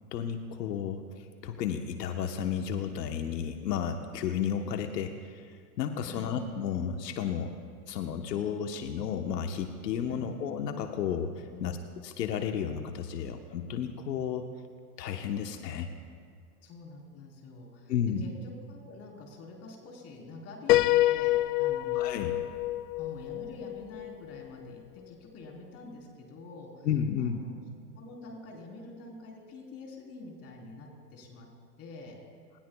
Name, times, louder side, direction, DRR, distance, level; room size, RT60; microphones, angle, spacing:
voice 1, 0.1-7.5 7.9-11.8 12.0-14.5 15.0-15.9 17.9-18.2 21.9-22.3 26.8-27.4, left 8 dB, 85° left, 5 dB, 1.2 m, -32 dB
voice 2, 6.0-6.4 10.1-10.3 11.5-11.7 16.6-17.9 18.2-21.3 21.6-22.0 22.5-26.9 27.2-27.5 28.0-31.5 31.8-32.2, left 3 dB, 30° left, -1 dB, 3.8 m, -46 dB
Piano, 20.7-24.4, left 16 dB, 70° left, 0.6 m, -27 dB
30.0 x 20.5 x 2.3 m, 2.1 s
supercardioid pair, 150°, 48 cm